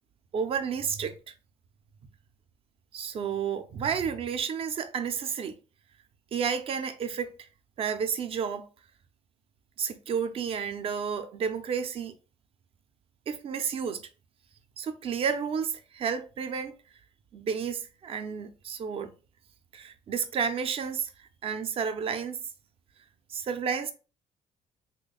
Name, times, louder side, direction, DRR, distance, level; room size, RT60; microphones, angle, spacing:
voice 1, 0.3-1.3 2.9-5.5 6.3-7.5 7.8-8.7 9.8-12.1 13.3-14.0 14.8-16.7 17.3-19.1 19.7-22.4 23.3-23.9, right 7 dB, 50° right, 0.5 m, -31 dB
3.1 x 2.2 x 4.0 m
cardioid pair, 135°, 13 cm